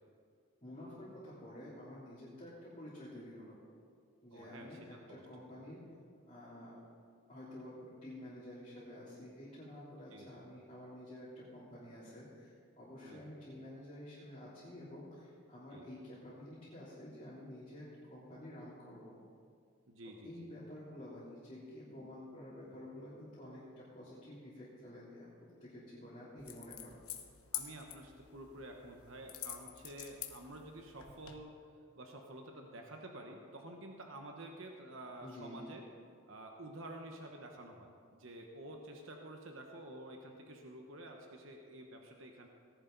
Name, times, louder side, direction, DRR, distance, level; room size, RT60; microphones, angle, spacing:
voice 1, 0.6-3.6 4.2-5.8 6.3-6.9 7.3-12.5 12.8-19.2 20.2-25.3 25.6-27.0 35.2-35.7, left 1 dB, 30° left, -12 dB, 3.4 m, -50 dB
voice 2, 4.3-4.8 5.1-5.5 10.1-10.3 13.0-13.2 15.7-15.9 19.9-20.5 27.5-31.5 31.9-35.8 36.3-42.5, right 1 dB, 60° right, 2 dB, 1.1 m, -50 dB
sound 1, 26.4-31.4, left 11 dB, 80° left, 1.1 m, -47 dB
18.0 x 11.0 x 4.0 m, 2.2 s
head